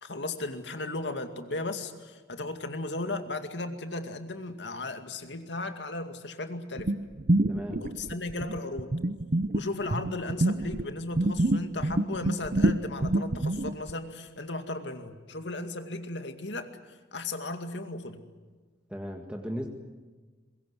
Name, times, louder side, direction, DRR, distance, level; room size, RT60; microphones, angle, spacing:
voice 1, 0.0-6.9 7.8-9.0 9.5-16.7 17.1-18.2, left 2 dB, 85° left, 7 dB, 2.3 m, -35 dB
sound 1, 6.8-10.8 11.1-13.9, right 1 dB, 50° right, 0.7 m, -27 dB
voice 2, 7.5-7.8 18.9-19.7, equal, 5° right, 2 dB, 1.8 m, -36 dB
23.0 x 21.5 x 9.6 m, 1.3 s
head